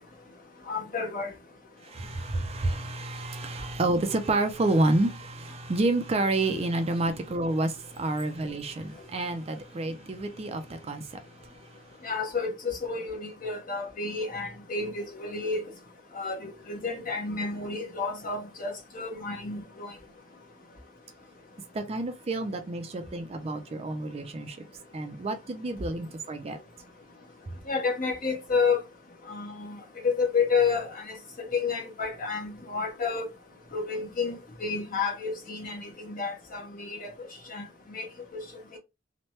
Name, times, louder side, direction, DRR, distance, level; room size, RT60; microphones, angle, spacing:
voice 1, 0.7-1.3 12.0-15.6 16.1-19.9 27.7-28.8 29.3-29.8 30.0-31.1 31.5-33.3 33.7-37.1 37.5-37.6 37.9-38.0 38.3-38.4 38.7-38.8, left 4 dB, 45° left, 1.0 m, -30 dB
voice 2, 1.9-11.0 21.7-24.6 24.9-26.6, right 2 dB, 30° right, 0.4 m, -29 dB
3.1 x 2.1 x 2.8 m
head